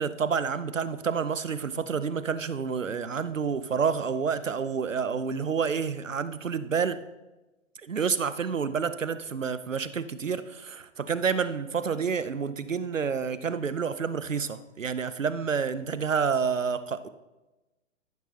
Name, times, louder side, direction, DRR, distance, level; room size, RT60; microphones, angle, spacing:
voice 1, 0.0-7.0 7.8-17.1, right 6 dB, 80° right, 14 dB, 0.8 m, -29 dB
13.5 x 11.5 x 2.9 m, 1.1 s
figure-of-eight pair, 115°, 38 cm